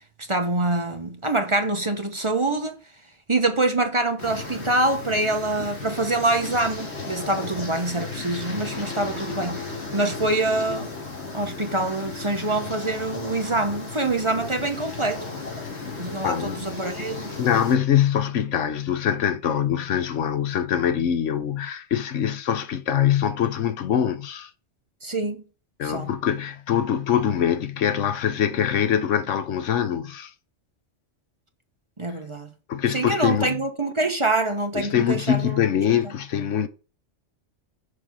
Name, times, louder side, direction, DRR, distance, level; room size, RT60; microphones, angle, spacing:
voice 1, 0.3-2.8 3.3-10.9 11.3-15.2 16.0-17.3 25.0-25.4 25.8-26.1 32.0-32.5 32.9-35.6, right 2 dB, 25° right, 1.0 m, -25 dB
sound 1, 4.2-17.8, left 4 dB, 60° left, 2.5 m, -35 dB
voice 2, 16.2-16.6 17.2-24.5 25.8-30.3 32.7-33.6 34.7-36.7, left 9 dB, 90° left, 1.2 m, -23 dB
6.8 x 5.3 x 4.8 m
omnidirectional pair, 1.2 m